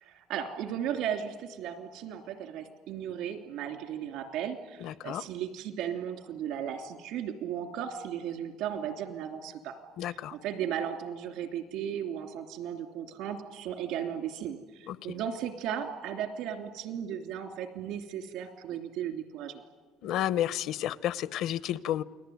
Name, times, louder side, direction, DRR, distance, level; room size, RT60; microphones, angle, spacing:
voice 1, 0.0-9.8 10.0-19.6, right 9 dB, 80° right, 7 dB, 3.0 m, -36 dB
voice 2, 4.8-5.2 10.0-10.3 14.9-15.0 20.0-22.0, left 12 dB, 70° left, 18 dB, 0.8 m, -31 dB
29.0 x 20.0 x 9.4 m, 1.4 s
cardioid pair, 115°, 0 cm